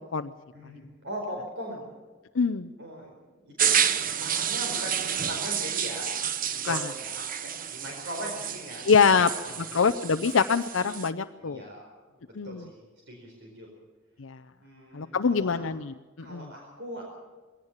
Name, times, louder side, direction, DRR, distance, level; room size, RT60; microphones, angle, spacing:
voice 1, 0.5-1.9 2.8-9.1 9.4-9.7 11.4-11.8 12.1-13.7 14.6-15.7 16.2-17.0, equal, 60° right, 0 dB, 4.7 m, -40 dB
voice 2, 2.3-2.7 6.6-6.8 8.8-9.3 9.7-11.6 12.4-12.6 14.2-14.4 14.9-16.4, left 5 dB, 80° left, 8 dB, 0.6 m, -24 dB
sound 1, 3.6-11.1, right 8 dB, 45° right, 0.9 m, -30 dB
21.0 x 17.5 x 7.3 m, 1.3 s
head